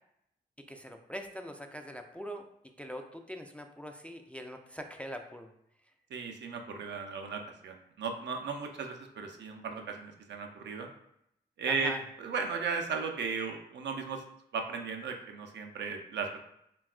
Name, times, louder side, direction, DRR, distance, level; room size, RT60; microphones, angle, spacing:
voice 1, 0.7-2.5 2.8-5.5 11.7-12.0, equal, 5° left, 4 dB, 0.3 m, -42 dB
voice 2, 6.1-10.9 11.6-11.9 12.2-14.2 14.5-16.4, right 5 dB, 65° right, 4 dB, 0.4 m, -36 dB
3.3 x 2.3 x 2.3 m, 0.76 s
supercardioid pair, 40°, 20 cm